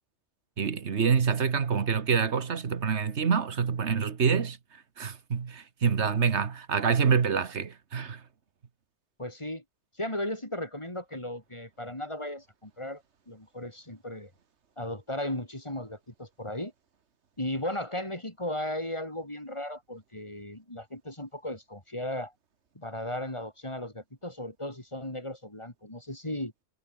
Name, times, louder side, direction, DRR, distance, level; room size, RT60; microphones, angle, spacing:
voice 1, 0.6-4.6 5.0-8.2, right 6 dB, 85° right, 1.7 m, -26 dB
voice 2, 9.2-9.6 10.0-14.3 14.8-16.7 17.4-22.3 22.8-26.5, left 1 dB, 25° left, 4.1 m, -36 dB
omnidirectional pair, 1.1 m